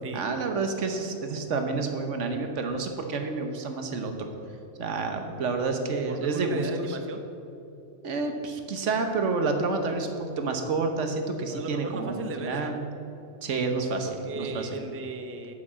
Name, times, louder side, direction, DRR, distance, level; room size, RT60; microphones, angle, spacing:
voice 1, 0.1-4.3 4.8-7.0 8.0-12.8 13.4-14.7, right 3 dB, 85° right, 5 dB, 1.4 m, -29 dB
voice 2, 6.1-7.3 11.5-12.8 14.1-15.5, right 3 dB, 20° right, 6 dB, 0.4 m, -37 dB
8.6 x 7.1 x 7.3 m, 2.8 s
omnidirectional pair, 1.2 m